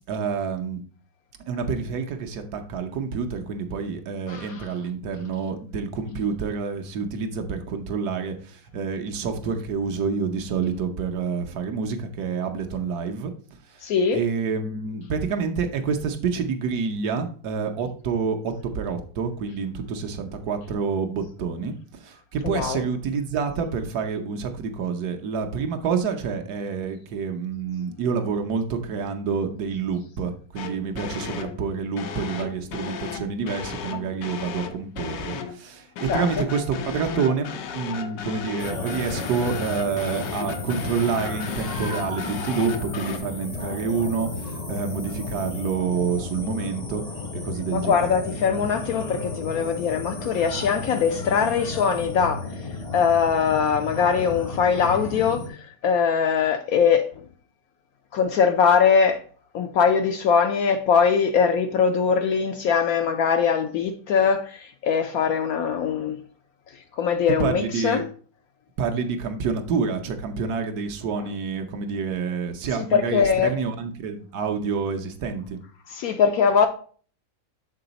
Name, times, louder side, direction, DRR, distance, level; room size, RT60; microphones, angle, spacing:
voice 1, 0.1-0.8 1.5-13.3 13.7-13.8 14.1-47.0 47.3-48.1 67.4-68.0 68.8-75.6, right 5 dB, 70° right, 1.2 m, -28 dB
voice 2, 4.3-4.7 13.8-14.2 22.4-22.8 36.1-36.4 47.7-57.2 58.1-59.2 59.5-66.2 66.7-68.0 72.8-73.6 75.9-76.7, left 6 dB, 70° left, 0.9 m, -22 dB
sound 1, 30.6-31.6 32.0-35.6 36.0-43.2, left 7 dB, 85° left, 1.4 m, -35 dB
sound 2, 38.6-55.5, left 3 dB, 35° left, 0.6 m, -33 dB
6.7 x 3.8 x 3.9 m
omnidirectional pair, 1.9 m